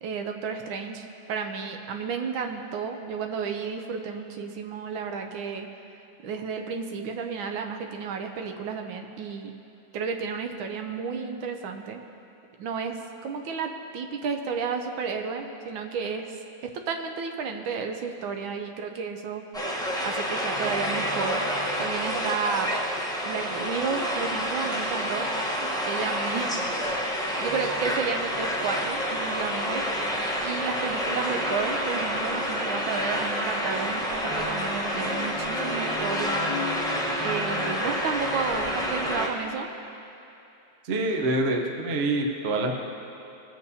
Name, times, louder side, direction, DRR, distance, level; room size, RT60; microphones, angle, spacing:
voice 1, 0.0-5.7 6.2-9.5 9.9-12.0 12.6-16.4 16.6-19.4 20.0-22.7 23.2-25.3 25.9-26.7 27.0-29.8 30.4-36.6 37.2-39.7, right 5 dB, 75° right, 4 dB, 1.4 m, -32 dB
sound 1, 19.5-39.3, equal, 5° left, 0.3 m, -28 dB
voice 2, 40.8-42.7, right 2 dB, 45° right, 1 dB, 0.9 m, -26 dB
21.5 x 7.6 x 2.8 m, 2.9 s
omnidirectional pair, 2.2 m